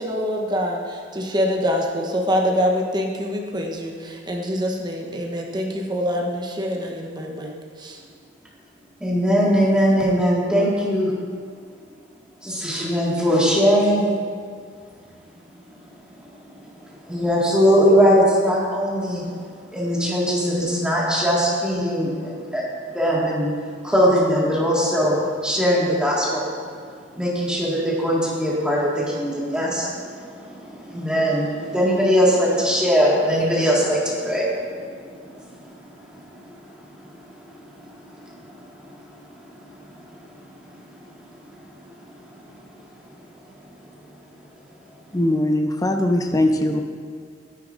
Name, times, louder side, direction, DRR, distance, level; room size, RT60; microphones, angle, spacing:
voice 1, 0.0-7.5 7.8-8.0, equal, 25° right, 1 dB, 0.9 m, -25 dB
voice 2, 9.0-11.1 12.4-14.1 16.2-16.6 17.1-19.2 19.7-22.6 22.9-23.5 23.8-25.2 25.4-26.5 27.1-37.1 37.8-40.2 40.6-40.7 41.0-41.1 42.1-42.2 42.4-42.6, equal, 5° right, -6 dB, 1.7 m, -21 dB
voice 3, 45.1-46.8, left 1 dB, 20° left, 5 dB, 0.6 m, -20 dB
9.9 x 9.5 x 2.5 m, 2.1 s
head